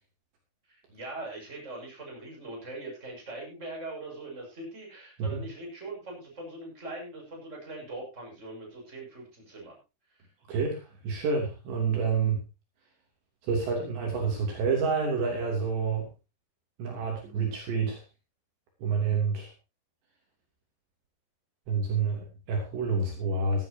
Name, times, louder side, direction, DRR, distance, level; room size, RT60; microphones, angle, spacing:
voice 1, 0.7-9.8 10.1-10.2, right 2 dB, 15° right, -1 dB, 6.6 m, -41 dB
voice 2, 10.5-12.4 13.4-16.1 16.8-18.0 18.8-19.5 21.7-23.7, right 5 dB, 60° right, 0 dB, 5.1 m, -28 dB
17.0 x 13.5 x 2.9 m, 0.28 s
omnidirectional pair, 5.8 m